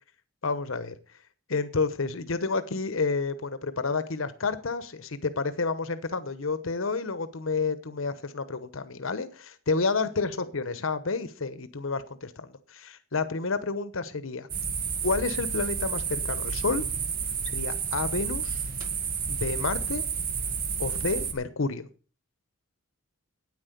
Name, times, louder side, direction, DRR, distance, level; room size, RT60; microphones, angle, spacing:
voice 1, 0.4-0.9 1.5-14.5 15.0-16.8 17.5-18.7 19.3-20.0 20.8-21.9, left 4 dB, 75° left, 13 dB, 1.0 m, -30 dB
sound 1, 14.5-21.3, right 6 dB, 45° right, 1.7 m, -31 dB
9.6 x 9.1 x 6.7 m, 0.38 s
head